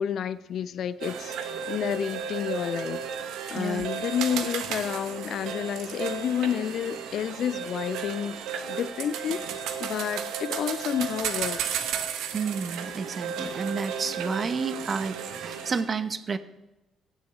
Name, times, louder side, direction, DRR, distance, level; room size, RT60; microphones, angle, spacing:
voice 1, 0.0-1.4 1.7-8.4 8.7-11.9, left 9 dB, 55° left, 16 dB, 0.6 m, -30 dB
sound 1, 1.0-15.8, right 7 dB, 65° right, 1.1 m, -34 dB
voice 2, 3.6-3.9 12.3-16.4, right 5 dB, 40° right, 13 dB, 0.9 m, -30 dB
16.0 x 7.7 x 6.7 m, 0.98 s
figure-of-eight pair, 45°, 0 cm